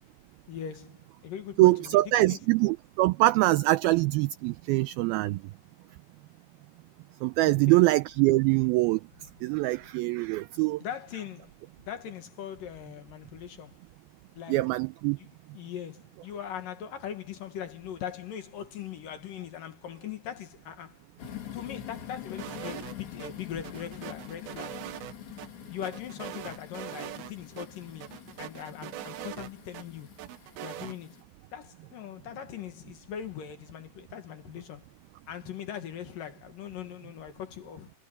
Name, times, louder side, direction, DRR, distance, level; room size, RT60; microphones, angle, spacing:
voice 1, 0.5-2.4 7.4-7.8 10.8-13.8 14.4-14.7 15.2-15.3 15.5-21.0 21.5-24.9 25.7-28.1 28.4-30.1 30.6-31.2 31.5-34.9 35.3-37.9, left 9 dB, 60° left, 3.0 m, -40 dB
voice 2, 1.6-5.4 7.2-9.0 9.4-10.8 14.5-15.2, right 19 dB, 90° right, 2.1 m, -23 dB
sound 1, 21.2-31.2, left 11 dB, 85° left, 5.6 m, -45 dB
sound 2, 22.4-23.3 23.6-25.5 25.8-27.3 27.6-27.7 28.0-29.8 30.2-31.0, right 14 dB, 75° right, 2.5 m, -41 dB
omnidirectional pair, 4.9 m